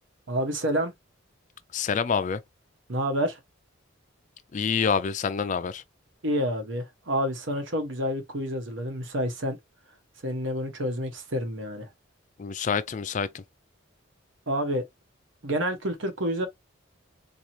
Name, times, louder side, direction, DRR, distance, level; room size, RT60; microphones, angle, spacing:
voice 1, 0.3-0.9 2.9-3.4 6.2-9.6 10.2-11.9 14.5-14.8 15.4-16.5, equal, 70° right, 1.2 m, -28 dB
voice 2, 1.7-2.4 4.5-5.8 12.4-13.4, left 6 dB, 40° left, 0.3 m, -27 dB
4.3 x 2.4 x 3.0 m
head